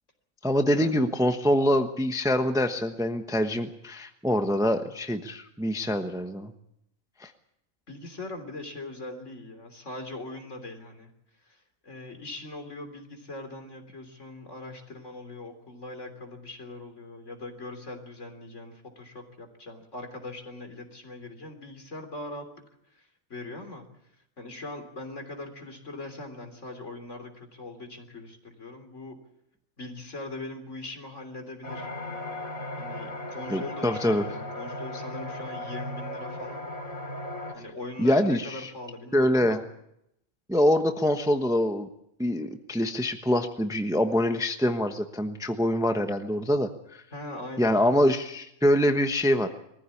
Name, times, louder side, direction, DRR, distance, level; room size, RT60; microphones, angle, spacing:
voice 1, 0.4-6.5 7.2-7.3 33.5-34.3 38.0-38.7 39.1-39.6 40.5-41.9 42.2-47.0 47.6-49.5, equal, 5° right, 6 dB, 1.0 m, -25 dB
voice 2, 7.9-11.1 11.4-22.5 22.9-23.9 24.4-29.2 29.8-31.9 32.8-36.6 37.5-39.6 47.1-48.0, left 2 dB, 60° left, 6 dB, 3.8 m, -41 dB
sound 1, 31.6-37.5, left 1 dB, 90° left, 3.8 m, -36 dB
22.5 x 15.0 x 8.5 m, 0.78 s
omnidirectional pair, 1.4 m